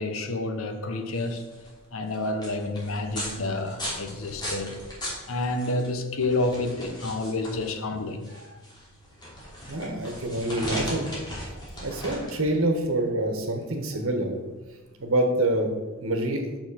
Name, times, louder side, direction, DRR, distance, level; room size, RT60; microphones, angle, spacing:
voice 1, 0.0-1.4 1.9-4.8 5.3-8.3, left 2 dB, 75° left, 1.0 m, -29 dB
sound 1, 1.0-15.5, equal, 20° left, 2.8 m, -39 dB
voice 2, 9.7-11.4 11.8-14.3 15.0-15.7 16.0-16.5, right 1 dB, 70° right, 1.5 m, -26 dB
6.4 x 6.3 x 6.4 m
head